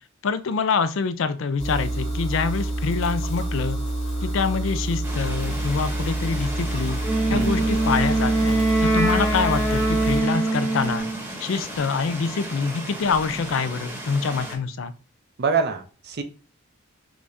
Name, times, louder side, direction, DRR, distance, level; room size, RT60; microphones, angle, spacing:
voice 1, 0.2-3.8 4.2-7.0 7.3-11.1 11.4-14.9, left 5 dB, 65° left, 11 dB, 0.4 m, -25 dB
sound 1, 1.6-10.2, right 1 dB, 35° left, 1.2 m, -28 dB
sound 2, 5.0-14.5, equal, 10° right, 1.0 m, -36 dB
Wind instrument woodwind instrument, 7.0-11.2, right 2 dB, 15° left, 1.2 m, -23 dB
voice 2, 7.3-7.7 15.4-16.2, right 5 dB, 50° right, 7 dB, 0.6 m, -25 dB
4.9 x 3.4 x 2.6 m, 0.36 s
head